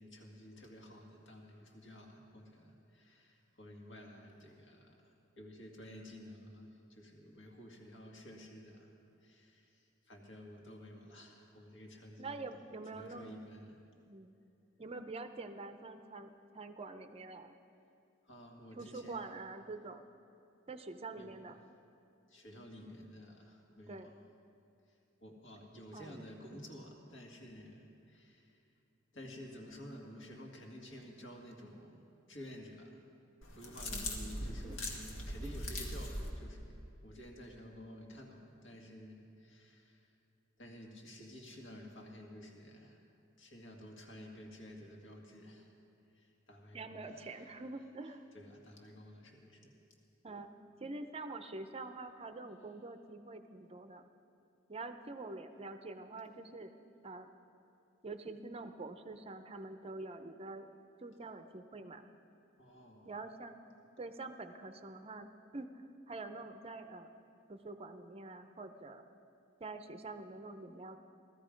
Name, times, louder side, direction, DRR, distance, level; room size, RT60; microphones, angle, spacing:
voice 1, 0.0-8.9 9.2-12.6 12.9-13.8 18.2-19.2 21.1-21.4 22.3-24.1 24.9-28.6 29.1-32.0 32.3-33.0 33.5-40.1 40.6-43.0 43.4-45.7 46.1-47.3 48.3-49.8 62.6-63.2, equal, 65° left, 1 dB, 2.0 m, -52 dB
voice 2, 12.2-13.3 14.1-14.3 14.8-17.6 18.8-20.0 20.7-21.6 23.9-24.1 25.9-26.2 26.5-26.7 33.9-34.3 34.6-34.8 35.4-35.5 46.7-48.2 50.2-50.5 50.8-54.0 54.7-56.7 57.0-57.3 58.0-60.7 61.0-62.0 63.0-63.6 64.0-67.1 67.5-69.0 69.6-71.0, right 3 dB, 30° right, 8 dB, 0.6 m, -46 dB
sound 1, 33.4-36.3, left 1 dB, 85° left, 1.8 m, -40 dB
16.0 x 13.5 x 5.1 m, 2.7 s
head